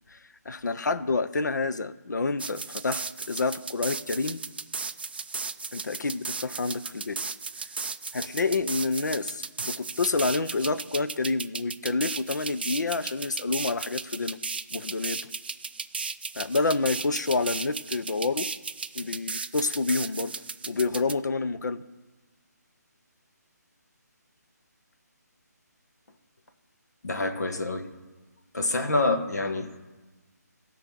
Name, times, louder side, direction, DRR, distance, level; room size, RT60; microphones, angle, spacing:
voice 1, 0.5-4.4 5.7-7.2 8.1-14.4 14.7-15.3 16.4-18.5 18.9-20.4 20.6-21.8, left 3 dB, 85° left, 13 dB, 0.7 m, -28 dB
sound 1, 2.4-21.1, right 4 dB, 35° right, 0.4 m, -35 dB
voice 2, 27.0-27.9 28.5-29.8, left 2 dB, 65° left, 6 dB, 1.5 m, -27 dB
16.0 x 5.7 x 7.5 m, 1.2 s
hypercardioid pair, 180°, 9 cm